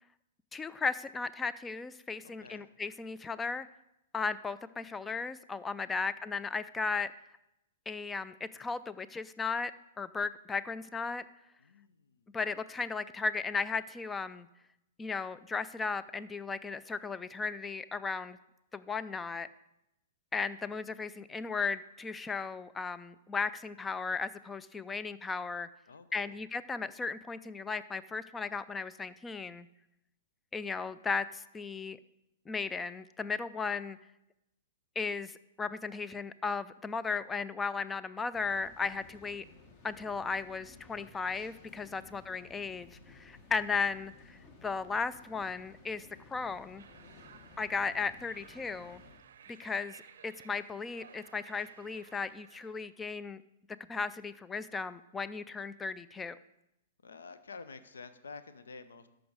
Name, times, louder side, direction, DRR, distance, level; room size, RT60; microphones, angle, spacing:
voice 1, 0.5-3.7 4.1-7.1 7.9-9.7 10.0-11.2 12.3-14.5 15.0-18.4 18.7-19.5 20.3-25.7 26.1-29.7 30.5-32.0 32.5-34.0 35.0-39.4 39.8-46.8 47.6-49.0 49.6-50.0 50.2-53.4 53.9-56.4, left 4 dB, 10° left, 16 dB, 0.4 m, -36 dB
voice 2, 2.2-2.7 5.8-6.1 11.6-12.4 25.9-26.4 42.0-42.2 47.0-47.4 57.0-59.1, left 4 dB, 70° left, 12 dB, 0.7 m, -51 dB
sound 1, 38.3-49.2, left 3 dB, 35° left, 1.4 m, -56 dB
sound 2, 46.8-52.9, right 8 dB, 60° right, 0.6 m, -56 dB
13.0 x 5.2 x 4.7 m, 0.87 s
figure-of-eight pair, 110°, 0 cm